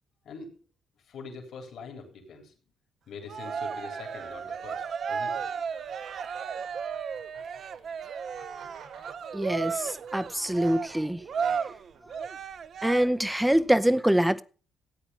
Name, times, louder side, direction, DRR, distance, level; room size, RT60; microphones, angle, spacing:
voice 1, 1.0-2.5 3.1-5.5, left 5 dB, 65° left, 3.3 m, -44 dB
Cheering, 3.3-13.3, right 6 dB, 55° right, 0.7 m, -34 dB
sound 1, 4.1-13.9, right 6 dB, 85° right, 3.4 m, -55 dB
voice 2, 9.3-11.2 12.8-14.4, right 1 dB, 5° right, 0.6 m, -24 dB
14.0 x 8.9 x 5.5 m
cardioid pair, 90°, 0 cm